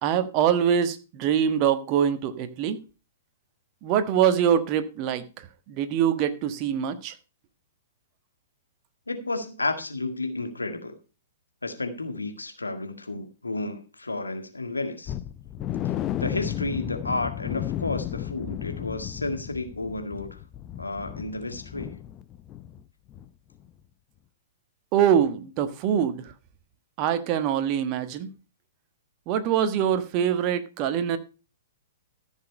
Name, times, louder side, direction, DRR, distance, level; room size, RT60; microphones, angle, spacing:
voice 1, 0.0-2.8 3.8-7.1 24.9-26.3 27.0-28.3 29.3-31.2, right 9 dB, 35° right, 10 dB, 1.4 m, -24 dB
voice 2, 9.1-11.0 11.6-15.1 16.2-20.4 20.8-22.0, left 2 dB, 80° left, 7 dB, 1.8 m, -32 dB
sound 1, 15.1-22.8 23.1-23.3 23.7-23.8, left 12 dB, 25° left, 0.6 m, -34 dB
14.0 x 6.5 x 5.3 m, 0.33 s
figure-of-eight pair, 110°, 0 cm